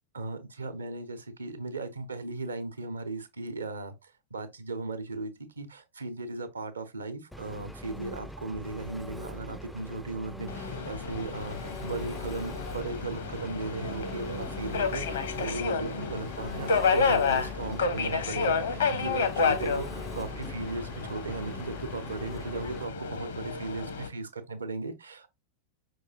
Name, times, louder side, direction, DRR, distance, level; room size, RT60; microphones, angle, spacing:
voice 1, 0.1-25.3, right 3 dB, 75° right, 0.8 m, -37 dB
Engine, 7.3-22.8, equal, ahead, 0.3 m, -42 dB
Subway metro underground, 10.5-24.1, left 5 dB, 65° left, 0.8 m, -31 dB
5.2 x 3.1 x 2.7 m
figure-of-eight pair, 90°, 0 cm